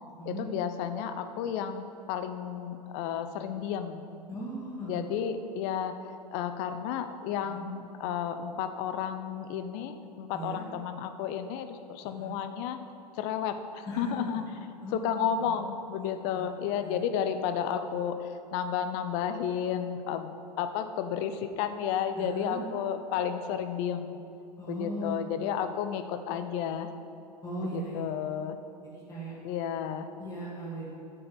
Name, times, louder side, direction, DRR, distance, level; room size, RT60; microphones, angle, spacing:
voice 1, 0.3-4.0 4.8-12.8 13.1-14.4 14.9-24.2 24.7-26.9 27.6-28.6 29.4-30.1, left 8 dB, 40° left, 9 dB, 0.7 m, -32 dB
voice 2, 4.3-5.0 7.5-7.7 10.3-10.6 12.0-12.3 13.9-14.4 14.8-15.2 16.0-16.1 16.3-16.4 16.8-17.0 22.2-22.6 24.6-25.2 27.4-28.0 28.9-29.4 30.2-30.9, right 1 dB, 15° left, -6 dB, 2.2 m, -38 dB
7.5 x 6.8 x 7.8 m, 2.7 s
figure-of-eight pair, 95°, 21 cm